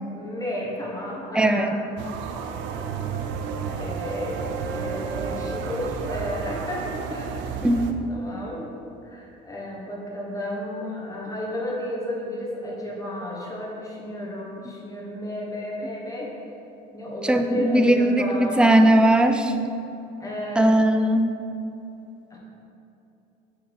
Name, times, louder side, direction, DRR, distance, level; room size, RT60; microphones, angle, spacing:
voice 1, 0.1-1.8 3.8-7.4 8.1-8.7 9.0-16.3 16.9-18.8 20.2-20.8 22.3-22.4, left 1 dB, 15° left, -3 dB, 1.4 m, -32 dB
voice 2, 1.4-1.8 7.6-7.9 17.3-19.5 20.6-21.3, right 1 dB, 5° right, 7 dB, 0.4 m, -19 dB
sound 1, 2.0-7.9, right 5 dB, 70° right, 0.5 m, -31 dB
6.5 x 4.3 x 5.4 m, 2.9 s
cardioid pair, 110°, 19 cm